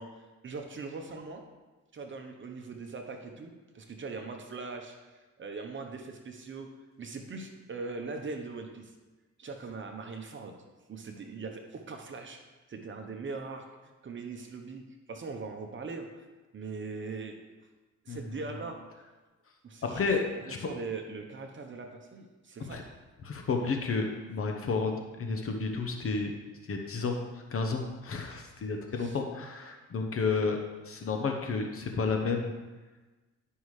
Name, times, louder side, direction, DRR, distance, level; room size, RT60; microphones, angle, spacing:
voice 1, 0.0-1.4 1.9-6.7 7.0-8.9 9.4-10.6 10.9-12.4 12.7-14.8 15.1-16.1 16.5-17.4 18.0-18.8 19.6-22.9 29.0-29.2, right 4 dB, 40° right, 4 dB, 0.9 m, -41 dB
voice 2, 18.1-18.6 19.9-20.2 20.5-20.7 22.7-22.8 23.2-26.3 26.7-27.2 27.5-30.6 30.8-32.5, left 4 dB, 45° left, 3 dB, 0.9 m, -31 dB
11.5 x 5.5 x 3.2 m, 1.2 s
cardioid pair, 90°, 30 cm